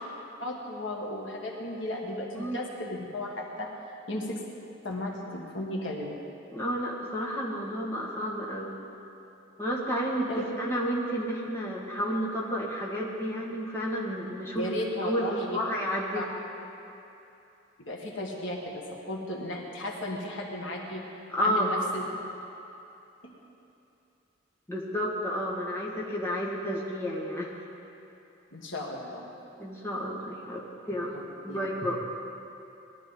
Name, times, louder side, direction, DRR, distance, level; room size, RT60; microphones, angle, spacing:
voice 1, 0.4-3.7 4.1-4.4 4.8-6.2 10.3-10.4 14.6-15.6 16.1-16.3 17.8-21.0 21.4-22.0 23.2-23.3 28.5-29.3 31.5-31.6, left 1 dB, 70° left, -1 dB, 1.8 m, -35 dB
voice 2, 6.5-8.7 9.6-14.7 15.0-16.3 21.3-21.9 24.7-27.5 29.6-30.6 30.9-31.1 31.4-32.0, equal, 15° left, -5 dB, 2.0 m, -31 dB
20.0 x 12.5 x 4.0 m, 2.8 s
head